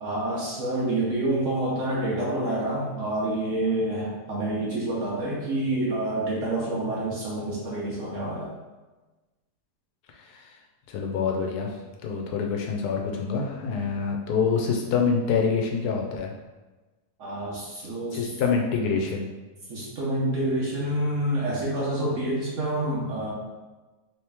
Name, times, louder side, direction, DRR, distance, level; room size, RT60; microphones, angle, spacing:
voice 1, 0.0-8.5 17.2-18.4 19.7-23.3, right 1 dB, 60° right, -5 dB, 1.0 m, -28 dB
voice 2, 10.1-10.5 10.9-11.7 12.0-16.3 18.1-19.3, left 5 dB, 80° left, 1 dB, 1.2 m, -26 dB
3.1 x 2.9 x 3.4 m, 1.2 s
omnidirectional pair, 1.7 m